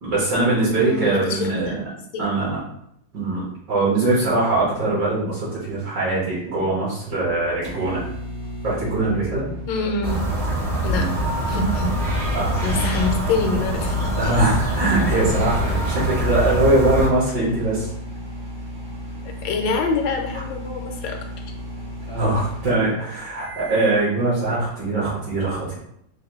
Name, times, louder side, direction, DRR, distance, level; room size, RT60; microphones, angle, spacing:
voice 1, 0.0-1.7 2.2-2.6 3.1-8.1 8.6-9.5 10.9-11.1 12.3-12.8 14.2-17.9 22.1-25.8, right 2 dB, 65° right, -7 dB, 1.9 m, -22 dB
voice 2, 0.8-1.8 2.1-2.2 9.7-10.2 10.8-11.1 11.5-12.0 12.6-14.4 15.7-15.8 19.4-21.2, left 4 dB, 80° left, 3 dB, 1.3 m, -25 dB
sound 1, 7.1-24.0, left 1 dB, 90° right, 2.1 m, -34 dB
sound 2, 10.0-17.1, equal, 30° right, 0.7 m, -24 dB
4.8 x 2.2 x 3.5 m, 0.74 s
omnidirectional pair, 2.0 m